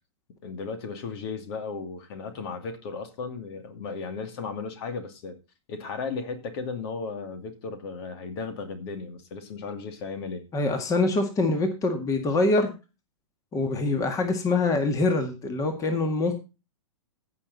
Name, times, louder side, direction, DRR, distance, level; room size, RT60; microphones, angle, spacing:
voice 1, 0.4-5.4 5.7-10.5, left 4 dB, 50° left, 2.4 m, -35 dB
voice 2, 10.5-12.7 13.5-16.4, left 2 dB, 20° left, 1.9 m, -24 dB
15.5 x 6.1 x 4.0 m
hypercardioid pair, 125°, 17 cm